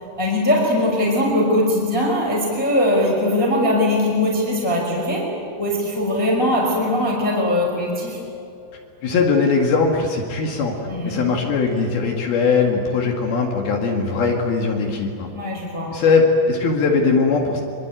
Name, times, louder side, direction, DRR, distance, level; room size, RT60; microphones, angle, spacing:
voice 1, 0.2-5.3 5.6-8.2 10.9-11.3 15.3-16.0, left 1 dB, 5° left, -2 dB, 4.7 m, -20 dB
voice 2, 9.0-10.8 11.0-15.3 15.9-17.6, left 4 dB, 65° left, 1 dB, 3.8 m, -20 dB
25.0 x 24.0 x 9.2 m, 2.5 s
omnidirectional pair, 4.9 m